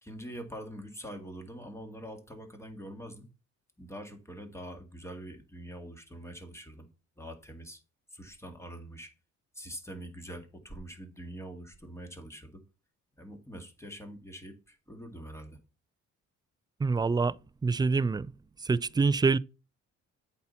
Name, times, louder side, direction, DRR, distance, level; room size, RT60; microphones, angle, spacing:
voice 1, 0.0-3.3 3.8-6.9 7.2-7.8 8.1-9.1 9.5-12.6 13.2-15.6, right 1 dB, 10° left, 2.0 m, -44 dB
voice 2, 16.8-17.3 17.6-18.3 18.6-19.4, right 4 dB, 15° right, 0.3 m, -25 dB
8.3 x 4.2 x 5.6 m
cardioid pair, 90°, 30 cm